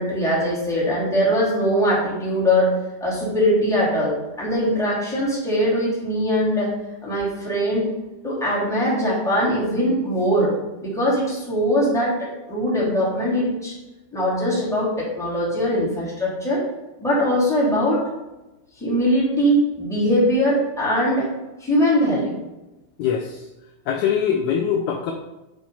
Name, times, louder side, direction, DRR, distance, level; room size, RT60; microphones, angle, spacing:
voice 1, 0.0-2.7 3.0-6.7 7.0-7.9 8.2-10.5 10.8-13.7 14.1-16.6 17.0-18.0 18.8-21.3 21.6-22.3, equal, ahead, -7 dB, 2.5 m, -21 dB
voice 2, 23.0-23.4 23.9-25.1, left 8 dB, 75° left, 2 dB, 1.8 m, -22 dB
9.4 x 4.9 x 5.5 m, 1.0 s
omnidirectional pair, 4.1 m